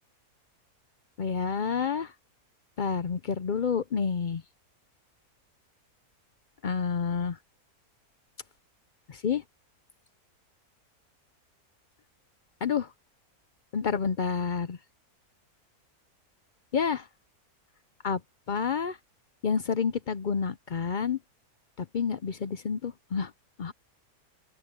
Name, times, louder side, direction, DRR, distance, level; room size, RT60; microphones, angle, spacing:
voice 1, 1.2-2.1 2.8-4.4 6.6-7.4 9.1-9.4 12.6-12.9 13.7-14.8 16.7-17.1 18.0-18.2 18.5-19.0 19.4-21.2 21.8-23.3 23.6-23.7, left 6 dB, 60° left, 0.5 m, -29 dB
open air
omnidirectional pair, 1.6 m